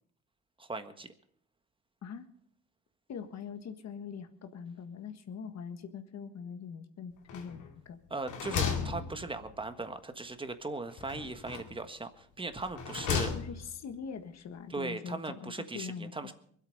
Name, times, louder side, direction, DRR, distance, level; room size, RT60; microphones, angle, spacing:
voice 1, 0.6-1.1 8.1-13.3 14.7-16.3, right 3 dB, 15° right, 8 dB, 1.5 m, -38 dB
voice 2, 3.1-8.0 13.1-16.1, left 6 dB, 60° left, 8 dB, 1.6 m, -43 dB
sound 1, 7.3-7.8 8.1-9.7 11.0-11.8 12.5-13.8, left 6 dB, 85° left, 2.5 m, -35 dB
23.0 x 8.4 x 5.4 m, 0.63 s
cardioid pair, 90°, 30 cm